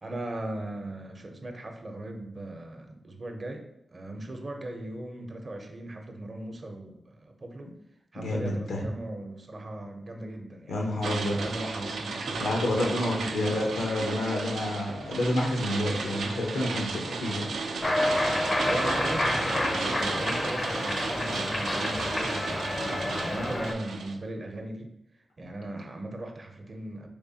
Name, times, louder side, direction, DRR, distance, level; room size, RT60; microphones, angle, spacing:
voice 1, 0.0-7.7 8.1-13.5 18.7-24.9 25.4-27.1, right 1 dB, 55° right, 4 dB, 0.6 m, -38 dB
voice 2, 8.2-8.8 10.7-11.4 12.3-17.5, left 1 dB, 90° left, 0 dB, 0.7 m, -29 dB
sound 1, 11.0-24.1, right 4 dB, 90° right, 0.3 m, -34 dB
Cheering, 17.8-23.7, left 1 dB, 35° left, 0.4 m, -29 dB
3.4 x 3.3 x 2.7 m, 0.82 s
supercardioid pair, 40°, 0 cm